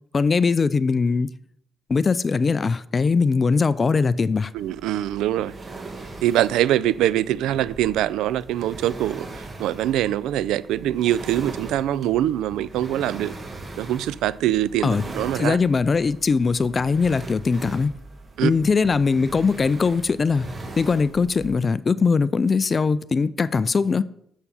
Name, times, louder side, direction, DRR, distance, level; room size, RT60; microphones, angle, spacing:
voice 1, 0.1-1.3 1.9-4.5 14.8-15.0 15.3-17.9 18.4-20.5 20.8-24.0, left 4 dB, 35° left, 0.4 m, -21 dB
voice 2, 4.5-5.5 6.2-9.3 9.6-13.3 13.8-15.6 18.4-18.5, right 12 dB, 90° right, 0.3 m, -23 dB
sound 1, 4.6-21.6, right 2 dB, 35° right, 1.4 m, -40 dB
7.1 x 6.8 x 5.4 m
cardioid pair, 90°, 0 cm